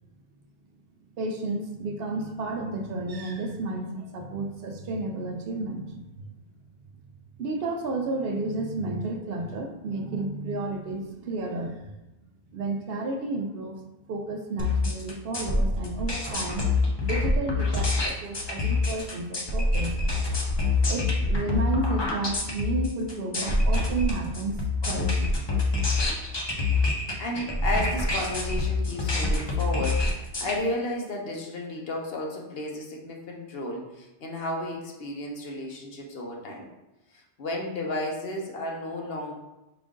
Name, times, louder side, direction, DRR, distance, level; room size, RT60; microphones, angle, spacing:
voice 1, 1.2-6.3 7.4-11.9 12.5-13.8 14.1-16.7 17.0-20.0 20.9-24.6 24.8-25.4, right 2 dB, 65° right, 3 dB, 0.7 m, -32 dB
sound 1, 14.6-30.5, left 2 dB, 30° left, 0.5 m, -26 dB
voice 2, 27.2-36.7 37.1-39.3, left 1 dB, 65° left, 0 dB, 0.9 m, -33 dB
4.9 x 2.5 x 3.6 m, 1.0 s
omnidirectional pair, 1.1 m